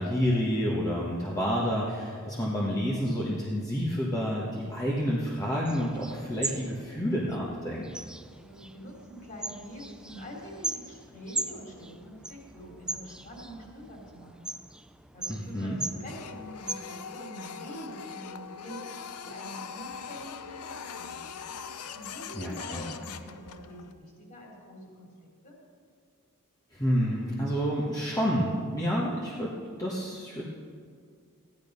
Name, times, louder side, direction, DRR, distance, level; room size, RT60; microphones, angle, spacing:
voice 1, 0.0-7.9 15.3-15.8 22.4-22.9 26.7-29.5 29.8-30.5, equal, 15° left, -5 dB, 1.4 m, -29 dB
sound 1, 5.7-16.7, right 2 dB, 5° right, 0.3 m, -39 dB
voice 2, 8.3-14.6 15.1-21.3 21.9-25.1 25.4-25.5, equal, 40° left, -1 dB, 3.1 m, -45 dB
Printer, 16.1-23.9, left 6 dB, 90° left, 0.6 m, -42 dB
14.5 x 11.0 x 5.3 m, 2.1 s
head